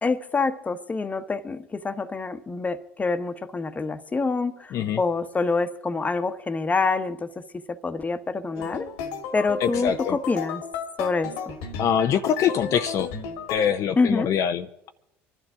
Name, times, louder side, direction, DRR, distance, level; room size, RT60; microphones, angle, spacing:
voice 1, 0.0-8.9 9.3-10.6 11.0-11.6 14.0-14.3, left 4 dB, 25° left, 1.1 m, -26 dB
sound 1, 8.6-13.6, left 6 dB, 80° left, 1.8 m, -33 dB
voice 2, 9.6-10.2 11.8-13.1 13.5-14.9, left 8 dB, 55° left, 0.6 m, -24 dB
25.0 x 12.0 x 3.7 m
hypercardioid pair, 75°, 7 cm